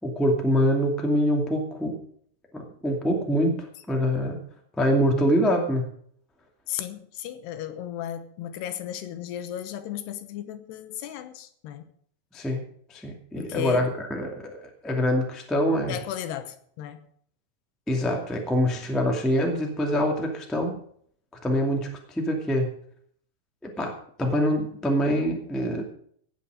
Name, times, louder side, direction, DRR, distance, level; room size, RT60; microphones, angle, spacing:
voice 1, 0.0-2.0 2.5-4.4 4.8-5.9 12.3-12.6 12.9-16.0 17.9-20.7 21.4-22.7 23.6-23.9 24.2-25.8, equal, ahead, 1 dB, 0.5 m, -25 dB
voice 2, 6.7-11.9 13.4-13.9 15.9-17.0, left 11 dB, 75° left, 10 dB, 3.0 m, -35 dB
17.0 x 7.3 x 6.4 m, 0.62 s
omnidirectional pair, 5.0 m